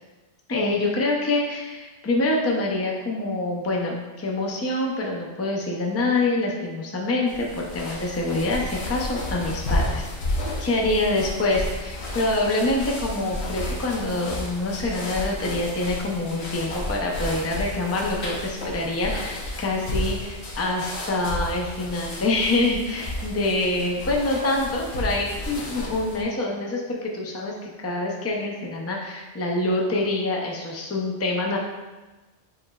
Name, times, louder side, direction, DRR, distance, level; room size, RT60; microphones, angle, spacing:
voice 1, 0.5-10.1 10.6-31.6, left 2 dB, 25° left, -1 dB, 0.3 m, -26 dB
sound 1, 7.3-26.2, left 1 dB, 65° left, 1.0 m, -32 dB
6.8 x 3.1 x 2.3 m, 1.2 s
omnidirectional pair, 1.3 m